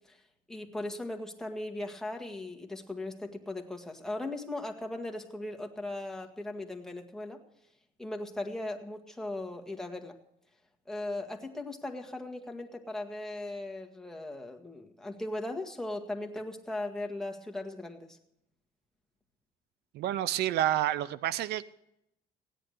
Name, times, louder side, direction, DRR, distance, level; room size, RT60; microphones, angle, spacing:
voice 1, 0.5-7.4 8.0-10.2 10.9-18.2, left 2 dB, 5° left, 1 dB, 1.8 m, -38 dB
voice 2, 19.9-21.7, right 12 dB, 75° right, 18 dB, 0.6 m, -29 dB
16.5 x 10.0 x 6.6 m, 0.82 s
cardioid pair, 110°, 17 cm